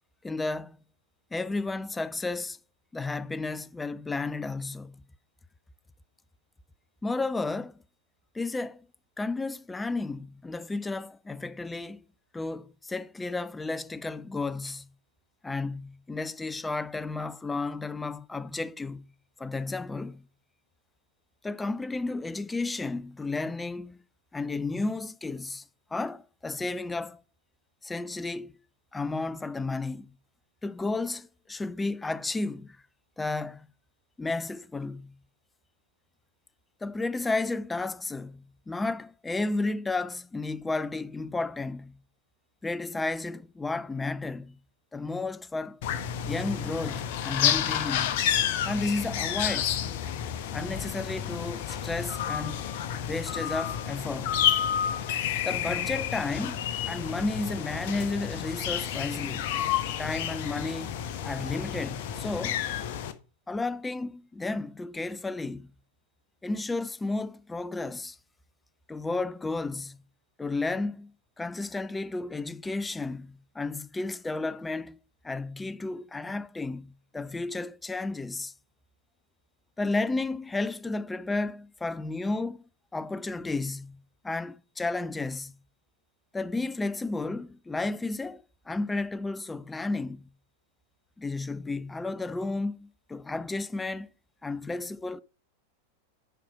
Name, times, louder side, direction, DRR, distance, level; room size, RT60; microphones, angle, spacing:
voice 1, 0.2-0.8 1.3-2.6 2.9-5.0 7.0-7.7 8.3-8.9 9.2-12.0 12.3-14.9 15.4-19.1 19.4-20.2 21.4-24.0 24.3-25.6 25.9-27.2 27.8-28.6 28.9-30.1 30.6-32.8 33.2-33.7 34.2-35.1 36.8-42.0 42.6-44.6 44.9-45.8 46.2-48.3 48.6-49.8 50.5-52.7 53.1-54.4 55.4-59.5 60.0-62.6 63.5-65.7 66.4-68.2 68.9-70.0 70.4-71.1 71.4-75.0 75.2-78.5 79.8-82.6 82.9-85.6 86.3-90.3 91.2-94.1 94.4-95.2, left 3 dB, 10° left, 0.5 m, -32 dB
sound 1, 45.8-63.1, left 9 dB, 50° left, 0.9 m, -30 dB
9.3 x 4.9 x 5.8 m
figure-of-eight pair, 90°, 0 cm